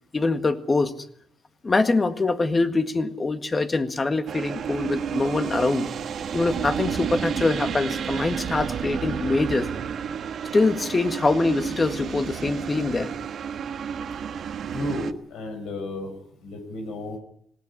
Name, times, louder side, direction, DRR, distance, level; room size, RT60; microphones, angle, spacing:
voice 1, 0.1-0.9 1.6-5.9 6.3-9.7 10.5-13.1, left 3 dB, 30° left, 9 dB, 1.8 m, -24 dB
sound 1, 4.3-15.1, right 7 dB, 60° right, 1.4 m, -31 dB
voice 2, 14.7-16.1 16.4-17.2, left 2 dB, 85° left, 6 dB, 6.1 m, -33 dB
19.5 x 18.0 x 9.9 m, 0.69 s
cardioid pair, 90°, 0 cm